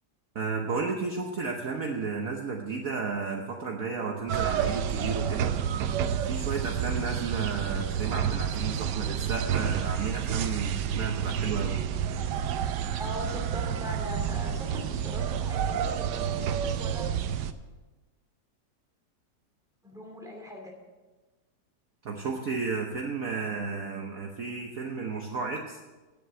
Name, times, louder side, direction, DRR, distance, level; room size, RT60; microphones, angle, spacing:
voice 1, 0.3-5.5 6.2-11.8 22.0-25.8, right 4 dB, 55° right, 1 dB, 1.3 m, -33 dB
sound 1, 4.3-17.5, right 8 dB, 75° right, 1.2 m, -29 dB
voice 2, 13.0-17.1 19.8-20.7, left 1 dB, ahead, -1 dB, 2.4 m, -40 dB
9.6 x 8.4 x 7.6 m, 1.2 s
omnidirectional pair, 2.0 m